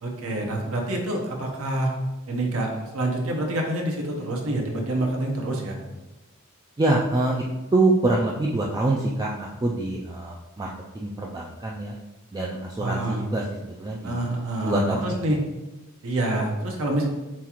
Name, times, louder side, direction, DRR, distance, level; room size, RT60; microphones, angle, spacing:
voice 1, 0.0-1.9 2.3-5.8 12.8-13.3 14.0-15.4 16.0-17.1, right 1 dB, 65° right, 1 dB, 0.9 m, -27 dB
voice 2, 6.8-7.4 7.7-10.7 10.9-12.0 12.3-14.2 14.6-15.4, right 2 dB, 20° right, -2 dB, 0.3 m, -25 dB
7.2 x 2.4 x 3.0 m, 1.1 s
head